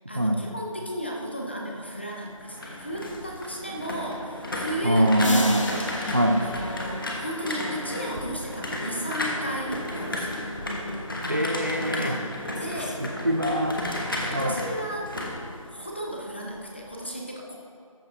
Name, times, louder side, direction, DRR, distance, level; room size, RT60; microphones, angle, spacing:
voice 1, 0.1-5.8 6.4-10.4 11.9-12.3 12.6-13.1 14.2-15.1 15.7-17.6, right 1 dB, 20° left, -2 dB, 0.7 m, -34 dB
sound 1, 2.2-16.2 16.6-16.9, left 1 dB, 40° left, 1.2 m, -33 dB
voice 2, 4.8-5.7 6.1-6.4 11.3-12.2 13.0-13.8 14.3-14.5, equal, 35° right, 3 dB, 0.5 m, -23 dB
sound 2, 5.2-8.0, left 1 dB, 65° left, 1.3 m, -35 dB
13.5 x 4.9 x 4.7 m, 2.3 s
figure-of-eight pair, 175°, 18 cm